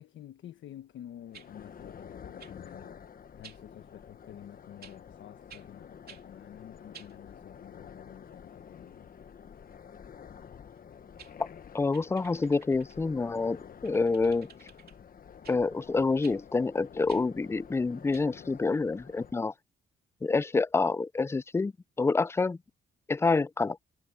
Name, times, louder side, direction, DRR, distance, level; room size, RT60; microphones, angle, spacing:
voice 1, 0.0-9.1, left 11 dB, 70° left, 1.3 m, -50 dB
sound 1, 1.1-19.3, left 7 dB, 45° left, 1.2 m, -49 dB
sound 2, 1.3-1.5 2.4-2.6 3.4-3.6 4.8-5.0 5.5-5.7 6.1-6.2 6.9-7.2 10.8-10.9 11.2-11.3 11.9-13.0 13.8-15.0 15.4-15.6 16.2-16.4 17.1-17.2 18.1-18.2, right 7 dB, 50° right, 2.9 m, -52 dB
voice 2, 11.7-14.5 15.5-19.5 20.2-21.7 22.0-22.6 23.1-23.8, left 3 dB, 15° left, 0.3 m, -27 dB
cardioid pair, 90°, 20 cm